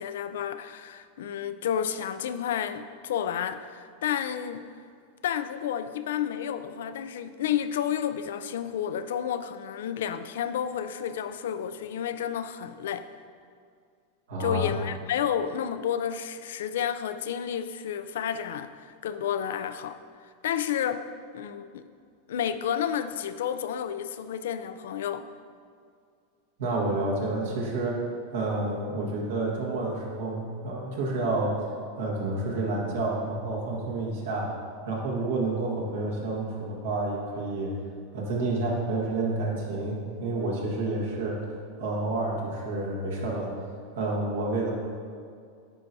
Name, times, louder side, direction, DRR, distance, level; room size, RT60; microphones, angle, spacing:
voice 1, 0.0-4.7 5.2-13.1 14.4-21.1 21.3-21.9 22.3-25.3, left 9 dB, 80° left, 11 dB, 0.3 m, -31 dB
voice 2, 14.3-14.7 26.6-28.0 28.3-31.7 32.0-34.5 34.9-37.8 38.1-41.4 41.8-43.5 43.9-44.7, right 2 dB, 80° right, -2 dB, 1.5 m, -29 dB
9.9 x 4.5 x 2.7 m, 2.2 s
hypercardioid pair, 115°, 0 cm